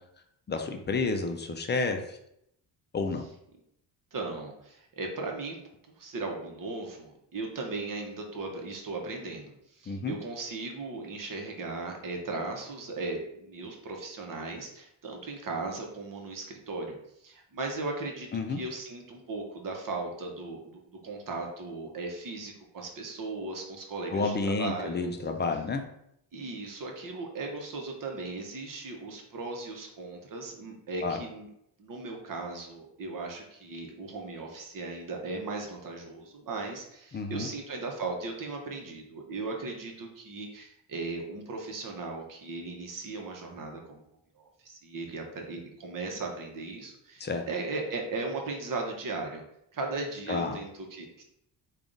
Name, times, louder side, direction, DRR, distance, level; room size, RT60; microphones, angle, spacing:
voice 1, 0.5-2.2 2.9-3.3 9.9-10.1 18.3-18.6 24.1-25.8 31.0-31.2 37.1-37.5 47.2-47.4 50.3-50.6, left 3 dB, 25° left, 5 dB, 0.4 m, -30 dB
voice 2, 4.1-5.6 6.0-17.0 17.2-25.1 26.3-31.5 31.8-44.0 44.4-49.4 49.7-51.2, right 3 dB, 45° right, 2 dB, 0.9 m, -37 dB
3.5 x 2.4 x 3.8 m, 0.76 s
cardioid pair, 100°, 44 cm